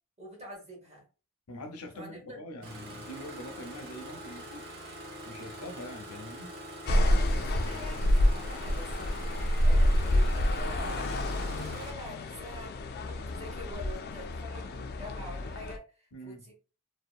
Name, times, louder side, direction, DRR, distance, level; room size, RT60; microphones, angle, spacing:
voice 1, 0.2-1.0 1.9-2.4 6.9-9.2 9.6-16.5, equal, 30° right, 1.0 m, -46 dB
voice 2, 1.5-4.6 5.2-6.6 16.1-16.4, equal, 85° left, 0.6 m, -44 dB
Engine starting, 2.6-11.9, right 1 dB, 45° right, 0.7 m, -44 dB
sound 1, 6.9-15.8, left 1 dB, 45° left, 0.3 m, -28 dB
2.7 x 2.1 x 2.4 m
head